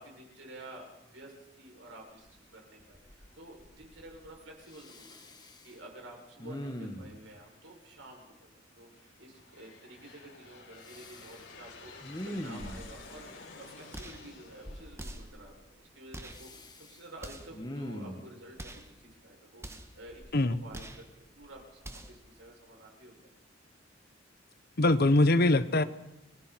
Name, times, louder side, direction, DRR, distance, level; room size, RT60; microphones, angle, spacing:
voice 1, 0.0-5.1 5.6-8.2 8.7-23.3, right 1 dB, 85° right, 0 dB, 7.2 m, -51 dB
Respiratory sounds, 2.3-2.4 2.8-3.3 3.6-4.4 4.7-5.7 6.4-7.2 10.8-11.4 12.0-13.1 14.6-15.3 16.3-17.0 17.5-18.3 20.1-21.0 21.4-21.6, equal, 20° left, 2.0 m, -42 dB
Aircraft, 7.2-7.8 8.5-16.0, left 4 dB, 80° left, 6.2 m, -52 dB
sound 1, 13.9-14.3 15.0-15.4 16.1-16.5 17.2-17.6 18.5-18.9 19.6-20.0 20.7-21.1 21.8-22.2, right 1 dB, 15° right, 1.6 m, -45 dB
voice 2, 24.8-25.8, left 2 dB, 55° left, 13 dB, 1.0 m, -23 dB
30.0 x 20.0 x 4.6 m, 0.95 s
head